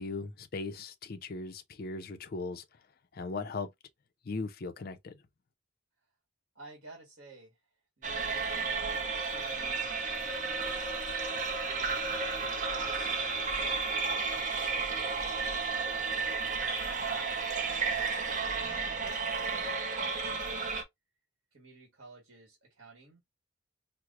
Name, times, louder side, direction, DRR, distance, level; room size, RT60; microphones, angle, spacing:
voice 1, 0.0-2.6 3.1-3.7 4.3-5.2, left 3 dB, 45° left, 0.4 m, -38 dB
voice 2, 6.5-7.6 8.0-8.9 9.2-10.8 11.6-12.0 12.3-13.7 14.3-15.3 15.9-20.8 21.5-23.3, right 3 dB, 60° right, 1.4 m, -54 dB
sound 1, 8.0-20.8, right 4 dB, 35° right, 0.6 m, -32 dB
4.5 x 2.0 x 2.4 m
head